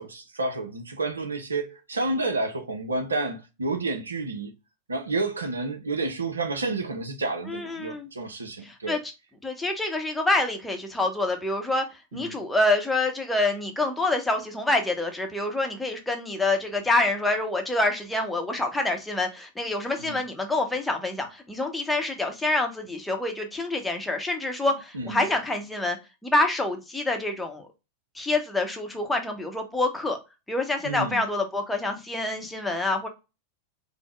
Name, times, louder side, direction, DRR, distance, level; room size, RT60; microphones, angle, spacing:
voice 1, 0.0-4.5 4.9-9.0 12.1-12.4 20.0-20.2 24.9-25.2 30.8-31.2, right 3 dB, 75° right, 0.5 m, -30 dB
voice 2, 7.5-8.1 8.6-9.0 9.4-26.0 26.2-27.7 28.1-30.2 30.5-33.1, left 2 dB, 5° left, 0.7 m, -26 dB
3.4 x 2.0 x 3.2 m
figure-of-eight pair, 90°, 0 cm